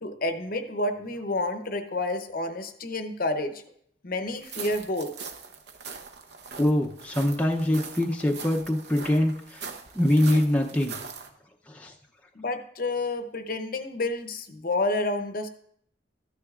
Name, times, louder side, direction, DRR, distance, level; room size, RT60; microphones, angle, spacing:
voice 1, 0.0-3.6 4.0-5.3 12.3-15.5, left 2 dB, 45° left, 8 dB, 0.7 m, -29 dB
sound 1, 4.4-11.3, right 5 dB, 55° right, 0.8 m, -41 dB
voice 2, 6.6-9.6 9.9-11.0 11.7-11.9, left 1 dB, 5° left, 0 dB, 0.6 m, -24 dB
13.5 x 9.8 x 2.4 m, 0.68 s
head